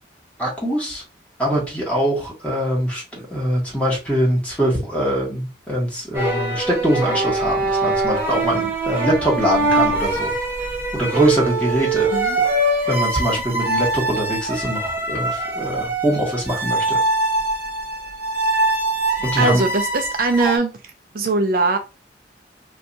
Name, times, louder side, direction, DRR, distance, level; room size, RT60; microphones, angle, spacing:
voice 1, 0.4-1.0 1.4-10.3 10.9-12.1 12.9-17.0 19.2-19.6, equal, 5° left, -3 dB, 1.2 m, -23 dB
sound 1, 6.1-20.6, right 2 dB, 15° right, 0.9 m, -23 dB
voice 2, 19.4-20.7 21.1-21.8, right 3 dB, 55° right, 5 dB, 0.4 m, -20 dB
2.6 x 2.3 x 3.9 m, 0.29 s
head